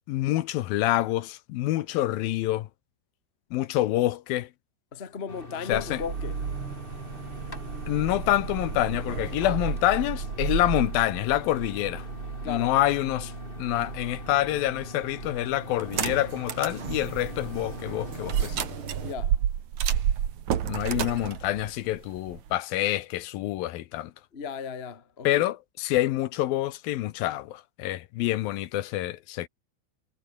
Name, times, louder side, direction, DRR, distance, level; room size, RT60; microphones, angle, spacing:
voice 1, 0.1-2.7 3.5-4.5 5.7-6.0 7.9-12.1 12.4-13.3 13.6-18.7 20.7-24.1 25.2-29.5, left 15 dB, 75° left, 2.6 m, -27 dB
voice 2, 4.9-6.4 9.4-9.6 12.4-12.7 19.0-19.4 24.3-25.5, left 6 dB, 30° left, 1.0 m, -36 dB
sound 1, 5.3-18.5, left 1 dB, 15° left, 5.0 m, -42 dB
sound 2, 5.7-19.1, right 6 dB, 35° right, 3.1 m, -36 dB
sound 3, 15.8-16.8 17.3-17.4 18.3-22.5, right 9 dB, 55° right, 2.8 m, -28 dB
omnidirectional pair, 4.3 m